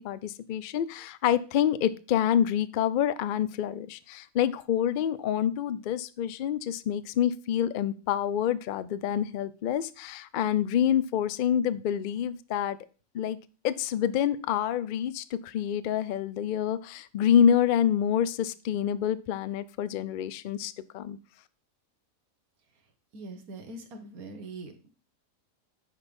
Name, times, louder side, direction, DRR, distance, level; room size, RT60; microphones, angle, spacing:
voice 1, 0.0-12.8 13.1-13.4 13.6-21.2, left 9 dB, 75° left, 15 dB, 0.4 m, -27 dB
voice 2, 22.6-24.9, right 2 dB, 90° right, 6 dB, 1.7 m, -44 dB
9.7 x 4.1 x 5.2 m, 0.35 s
omnidirectional pair, 1.5 m